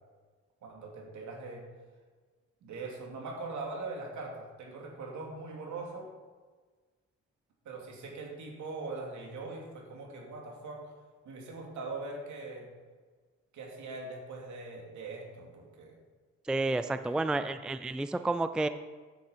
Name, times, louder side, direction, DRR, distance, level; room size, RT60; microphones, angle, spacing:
voice 1, 0.6-1.6 2.6-6.1 7.6-10.8 11.2-12.7 13.5-16.0 16.8-17.2, right 3 dB, 70° right, 0 dB, 3.0 m, -41 dB
voice 2, 16.5-18.7, right 2 dB, 5° right, 11 dB, 0.4 m, -30 dB
9.4 x 8.5 x 5.8 m, 1.4 s
cardioid pair, 90°, 30 cm